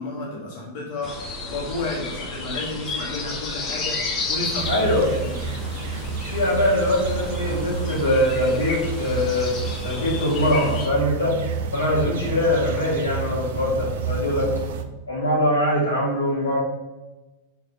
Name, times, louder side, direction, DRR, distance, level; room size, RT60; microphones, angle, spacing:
voice 1, 0.0-5.4, left 2 dB, 50° left, -4 dB, 1.5 m, -32 dB
sound 1, 1.0-10.9, left 3 dB, 30° left, 1.2 m, -32 dB
sound 2, 4.6-14.8, right 6 dB, 55° right, 0.6 m, -30 dB
voice 2, 4.7-5.1 6.3-11.4 11.7-14.5 15.1-16.6, left 1 dB, 75° left, -4 dB, 2.0 m, -22 dB
4.9 x 3.9 x 5.3 m, 1.1 s
figure-of-eight pair, 90°, 0 cm